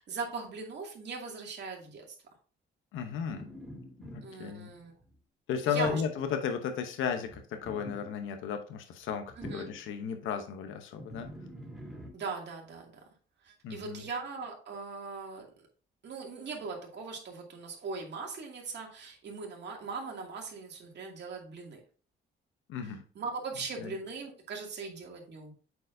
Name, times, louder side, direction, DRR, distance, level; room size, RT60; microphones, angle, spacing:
voice 1, 0.0-2.2 4.2-4.9 5.7-6.0 9.4-9.7 12.1-12.9 13.4-15.5 16.0-21.8 23.1-25.5, right 4 dB, 60° right, 0 dB, 2.3 m, -40 dB
voice 2, 2.9-3.5 4.1-4.7 5.5-11.3 13.6-14.0 22.7-23.0 23.8-23.9, left 7 dB, 85° left, 7 dB, 0.9 m, -34 dB
sound 1, 3.3-5.1 5.8-6.3 7.3-8.3 9.0-10.0 10.9-12.1, equal, 5° right, 2.3 m, -46 dB
8.1 x 4.6 x 2.6 m, 0.39 s
cardioid pair, 90°, 20 cm